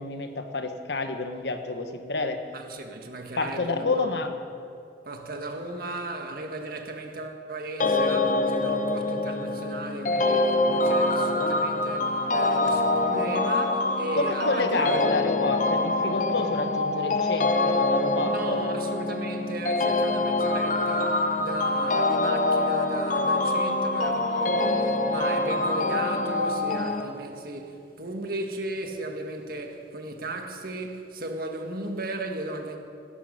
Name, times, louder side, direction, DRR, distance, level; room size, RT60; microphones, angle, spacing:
voice 1, 0.0-2.4 3.3-4.3 14.2-18.6, left 3 dB, 75° left, 1.2 m, -29 dB
voice 2, 2.5-4.2 5.1-15.1 18.2-32.8, right 2 dB, 55° right, 1.7 m, -36 dB
sound 1, 7.8-27.0, left 2 dB, 45° left, 0.9 m, -25 dB
17.0 x 11.5 x 6.6 m
head